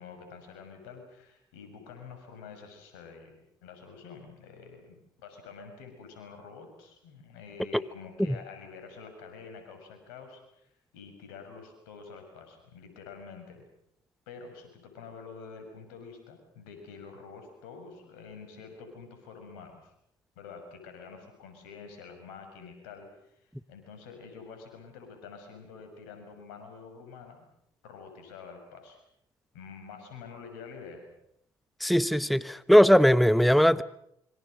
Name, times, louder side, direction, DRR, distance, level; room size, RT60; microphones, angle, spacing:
voice 1, 0.0-10.7 10.9-13.6 14.3-19.9 20.4-27.5 27.8-29.0 29.5-31.1, left 5 dB, 85° left, 6 dB, 6.4 m, -47 dB
voice 2, 31.8-33.8, equal, ahead, 16 dB, 0.9 m, -20 dB
27.5 x 24.5 x 6.5 m, 0.73 s
hypercardioid pair, 50°, 11 cm